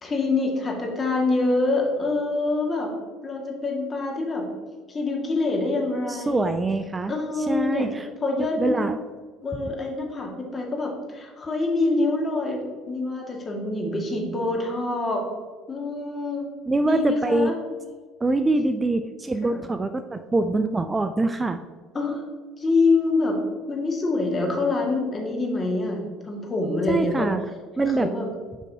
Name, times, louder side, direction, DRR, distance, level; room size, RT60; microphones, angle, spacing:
voice 1, 0.0-2.9 3.2-4.5 4.9-6.5 7.1-7.9 8.2-8.7 9.4-15.2 15.7-16.5 16.8-17.5 19.4-19.6 21.9-22.2 22.6-23.4 23.7-27.3 27.8-28.3, left 3 dB, 30° left, 0 dB, 1.8 m, -25 dB
voice 2, 6.1-8.1 8.4-9.0 16.7-17.5 18.2-21.6 26.9-27.4 27.8-28.1, right 2 dB, 20° right, 9 dB, 0.4 m, -24 dB
8.2 x 5.2 x 2.7 m, 1.5 s
hypercardioid pair, 65°, 0 cm